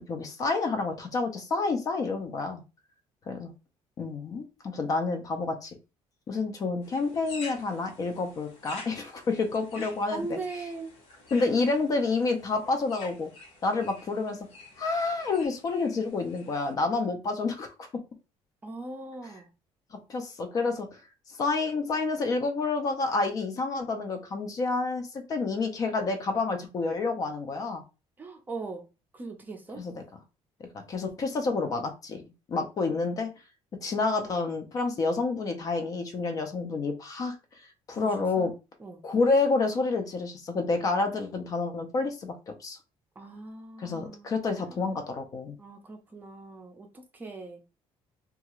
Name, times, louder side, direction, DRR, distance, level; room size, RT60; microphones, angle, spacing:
voice 1, 0.1-2.6 3.3-3.5 4.0-5.8 6.3-10.4 11.3-13.3 13.6-14.4 14.8-17.9 20.1-21.0 21.4-27.8 29.8-29.9 30.7-32.2 32.5-33.3 33.8-37.6 37.9-38.5 39.0-42.3 42.6-42.8 43.8-45.6, left 3 dB, 35° left, 0.4 m, -29 dB
sound 1, 6.8-16.7, left 3 dB, 75° left, 1.1 m, -49 dB
voice 2, 9.7-10.9 18.6-19.5 28.2-28.9 29.1-29.8 37.9-38.5 38.8-39.0 43.2-44.3 44.6-44.9 45.6-47.6, right 3 dB, 15° right, 0.5 m, -40 dB
2.7 x 2.4 x 3.0 m
cardioid pair, 165°, 11 cm